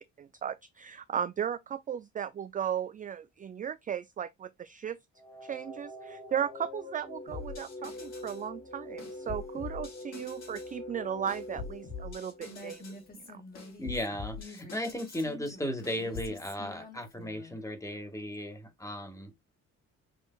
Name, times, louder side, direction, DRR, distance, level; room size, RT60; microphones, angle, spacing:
voice 1, 0.2-5.0 5.4-12.8 13.1-13.4, right 8 dB, 30° right, 0.3 m, -36 dB
sound 1, 5.2-13.1, left 1 dB, 85° left, 2.5 m, -45 dB
sound 2, 7.3-8.5 9.0-10.7 11.3-13.0 13.5-15.3 15.8-16.3, left 4 dB, 55° left, 3.8 m, -44 dB
Female speech woman speaking, 12.5-17.6, left 2 dB, 30° left, 2.2 m, -48 dB
voice 2, 13.8-19.3, left 1 dB, 10° left, 1.8 m, -36 dB
6.4 x 3.2 x 2.3 m
cardioid pair, 90°, 30 cm